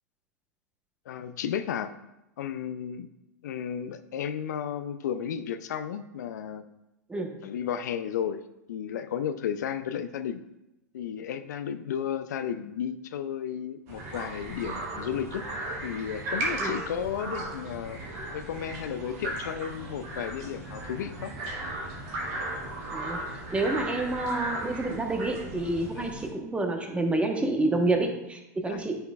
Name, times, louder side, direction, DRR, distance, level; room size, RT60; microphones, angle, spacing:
voice 1, 1.1-1.9 2.4-3.1 3.4-6.6 7.4-10.4 10.9-15.4 15.8-18.0 18.3-21.3 26.0-26.1 28.7-28.8, left 8 dB, 75° left, 11 dB, 0.4 m, -33 dB
sound 1, 13.9-26.3, right 2 dB, 55° right, 1.8 m, -36 dB
voice 2, 22.9-29.0, right 2 dB, 10° right, 4 dB, 0.9 m, -28 dB
9.4 x 5.3 x 2.3 m, 0.91 s
hypercardioid pair, 105°, 9 cm